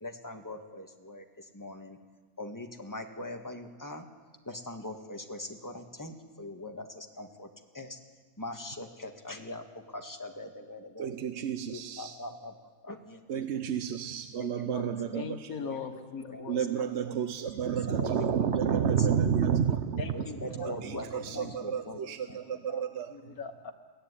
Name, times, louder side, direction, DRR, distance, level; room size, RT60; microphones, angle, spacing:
voice 1, 0.0-2.0 2.4-4.1 4.5-8.0 8.4-11.1 11.7-12.5 12.8-13.8 14.4-14.9 15.6-15.8 16.3-16.4 16.8-17.2 17.6-18.2 18.6-19.1 19.5-19.6 19.9-22.0 22.3-22.4, left 1 dB, 15° left, 4 dB, 1.8 m, -42 dB
voice 2, 11.0-12.2 13.3-15.6 16.5-20.1 20.5-23.1, right 8 dB, 55° right, 9 dB, 1.0 m, -30 dB
voice 3, 14.7-16.6 20.0-21.6 22.0-23.7, left 5 dB, 85° left, 5 dB, 2.0 m, -42 dB
22.5 x 16.0 x 9.9 m, 1.4 s
omnidirectional pair, 1.5 m